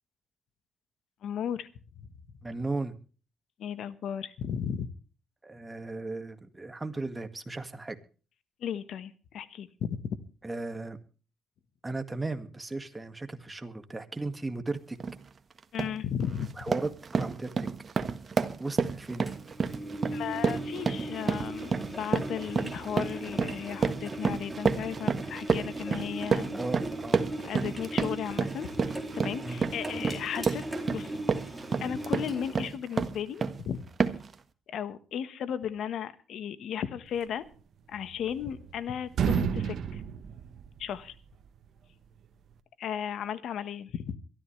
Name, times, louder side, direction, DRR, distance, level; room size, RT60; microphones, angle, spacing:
voice 1, 1.2-1.7 3.6-4.9 8.6-10.2 15.7-16.5 20.1-26.6 27.4-28.7 29.1-31.2 31.8-33.8 34.7-37.4 37.9-40.0 40.8-41.1 42.8-44.2, left 8 dB, 70° left, 14 dB, 1.3 m, -35 dB
voice 2, 2.4-3.0 5.4-8.0 10.4-11.0 11.8-15.0 16.6-17.7 18.6-19.3 26.5-27.2 29.4-29.6, right 2 dB, 20° right, 8 dB, 2.0 m, -36 dB
sound 1, 15.0-15.2 15.6-16.0 16.4-33.6 34.0-34.3, right 5 dB, 40° right, 1.5 m, -30 dB
Engine, 19.3-32.7, right 1 dB, ahead, 4.2 m, -38 dB
sound 2, 37.9-38.8 39.1-41.2, right 8 dB, 65° right, 1.4 m, -31 dB
23.0 x 13.0 x 3.3 m, 0.37 s
cardioid pair, 90°, 0 cm